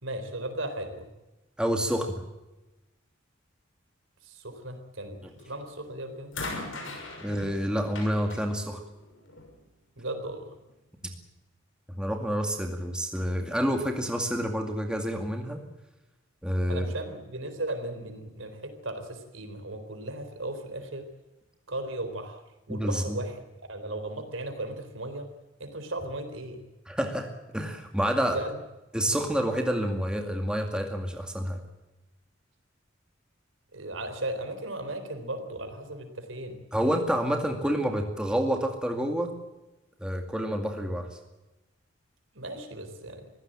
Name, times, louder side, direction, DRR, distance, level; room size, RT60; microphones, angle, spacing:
voice 1, 0.0-1.1 4.2-6.3 10.0-10.6 16.7-21.1 21.7-22.4 22.7-23.4 23.7-25.3 25.6-26.6 28.3-28.6 33.7-36.6 42.3-43.3, right 1 dB, 85° right, 8 dB, 4.0 m, -36 dB
voice 2, 1.6-2.2 7.2-8.8 11.9-15.6 16.4-16.9 22.7-23.2 26.9-28.4 28.9-31.6 36.7-39.3 40.0-41.1, equal, 5° right, 3 dB, 2.2 m, -28 dB
sound 1, 5.4-5.7 6.3-9.6 10.6-10.7, left 2 dB, 85° left, 6.3 m, -40 dB
23.5 x 16.0 x 8.9 m, 1.0 s
head